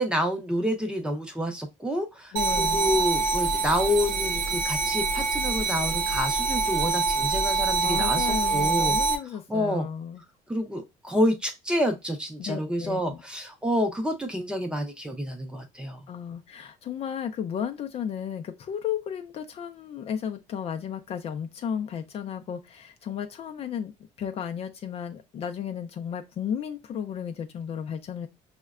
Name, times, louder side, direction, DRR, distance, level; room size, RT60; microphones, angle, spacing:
voice 1, 0.0-9.0 9.5-9.9 10.5-16.0, equal, 5° right, 0.6 m, -28 dB
voice 2, 2.3-3.0 7.8-10.2 12.4-13.2 16.1-23.9 24.2-28.3, left 8 dB, 45° left, 0.4 m, -34 dB
sound 1, 2.4-9.2, right 4 dB, 90° right, 0.8 m, -25 dB
5.4 x 2.1 x 2.3 m
cardioid pair, 140°, 14 cm